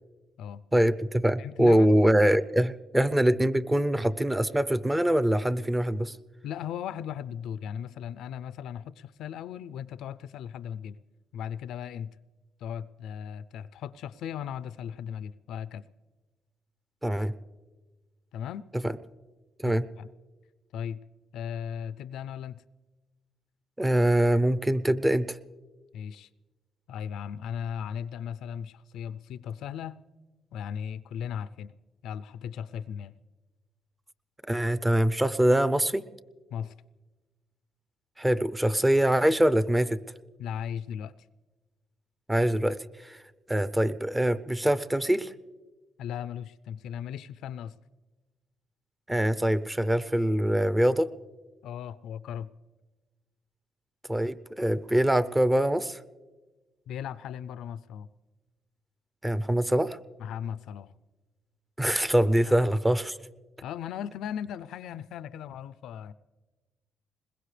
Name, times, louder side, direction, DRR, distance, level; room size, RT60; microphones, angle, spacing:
voice 1, 0.7-6.2 17.0-17.3 18.8-18.9 19.6-19.9 23.8-25.4 34.5-36.1 38.2-40.0 42.3-43.2 43.5-45.3 49.1-51.1 54.1-56.0 59.2-60.0 61.8-63.2, right 1 dB, 10° right, 0.6 m, -24 dB
voice 2, 1.4-1.9 6.4-11.0 11.3-12.1 12.6-15.9 18.3-18.7 19.6-20.1 20.7-21.0 21.3-22.6 25.9-26.3 26.9-30.0 30.5-31.7 32.0-33.1 36.5-36.7 40.4-41.1 46.0-47.7 51.6-52.5 56.9-58.1 60.2-60.9 62.5-62.7 63.6-66.1, left 8 dB, 80° left, 0.4 m, -37 dB
21.5 x 20.5 x 3.3 m
cardioid pair, 90°, 0 cm